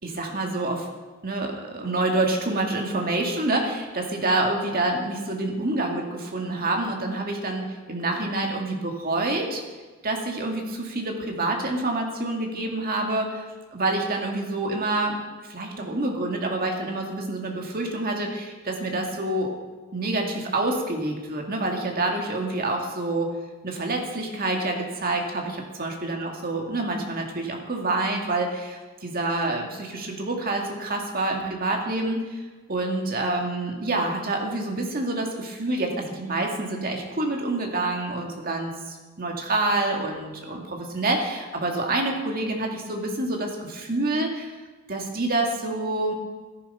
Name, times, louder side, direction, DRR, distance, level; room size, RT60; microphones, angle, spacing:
voice 1, 0.0-0.9 1.2-9.6 10.0-13.5 13.7-15.2 15.4-19.5 19.9-23.3 23.6-25.4 25.8-32.4 32.7-44.5 44.9-46.1, right 2 dB, 40° right, 1 dB, 2.0 m, -27 dB
13.5 x 11.0 x 5.5 m, 1.3 s
head